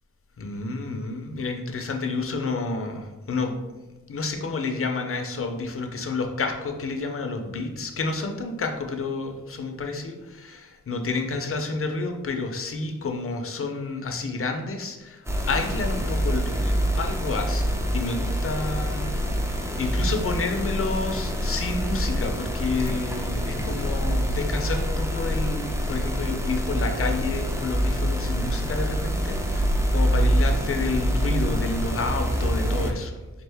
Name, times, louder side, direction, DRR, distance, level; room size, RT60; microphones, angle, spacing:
voice 1, 0.4-3.6 4.1-19.5 19.8-33.1, left 3 dB, 45° left, 4 dB, 0.6 m, -30 dB
sound 1, 15.3-32.9, equal, 10° right, 0.5 m, -25 dB
4.3 x 2.4 x 3.4 m, 1.1 s
cardioid pair, 75°, 31 cm